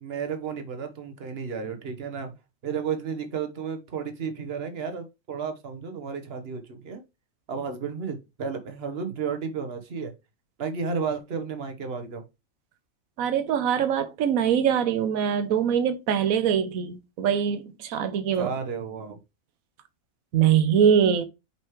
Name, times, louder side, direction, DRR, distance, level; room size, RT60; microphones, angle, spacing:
voice 1, 0.0-2.3 2.6-7.0 7.5-10.1 10.6-12.2 18.4-19.2, right 6 dB, 45° right, 1.3 m, -32 dB
voice 2, 13.2-18.5 20.3-21.2, right 8 dB, 70° right, 1.2 m, -23 dB
5.6 x 5.4 x 3.1 m
omnidirectional pair, 1.5 m